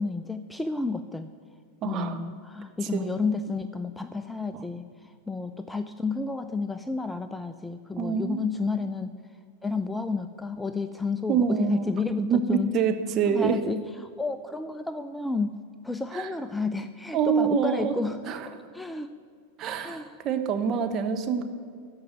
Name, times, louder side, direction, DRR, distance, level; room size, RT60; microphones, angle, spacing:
voice 1, 0.0-1.3 1.8-9.1 9.6-12.7 13.3-13.9 14.2-15.6 15.8-18.3 18.7-19.1 19.8-20.1, left 3 dB, 5° left, 11 dB, 0.4 m, -31 dB
voice 2, 1.8-2.2 2.9-3.1 8.0-8.4 11.3-11.9 12.2-13.6 16.1-16.3 17.1-17.9 18.3-18.5 19.6-21.4, right 6 dB, 30° right, 6 dB, 1.1 m, -26 dB
13.5 x 5.4 x 9.1 m, 2.2 s
figure-of-eight pair, 90°, 0 cm